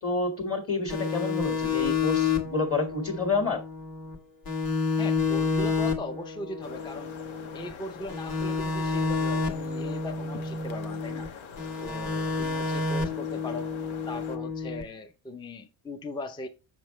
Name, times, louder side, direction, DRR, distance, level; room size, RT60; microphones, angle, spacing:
voice 1, 0.0-3.6, left 3 dB, 25° left, 1.9 m, -29 dB
sound 1, 0.9-4.2 4.5-7.7 8.1-11.3 11.6-14.8, left 4 dB, 45° left, 1.7 m, -30 dB
voice 2, 5.0-7.1 7.5-11.3 11.8-13.7 14.1-16.5, left 2 dB, 10° left, 0.5 m, -39 dB
sound 2, 6.6-14.4, left 6 dB, 70° left, 1.2 m, -44 dB
6.9 x 6.5 x 3.1 m
cardioid pair, 125°, 50 cm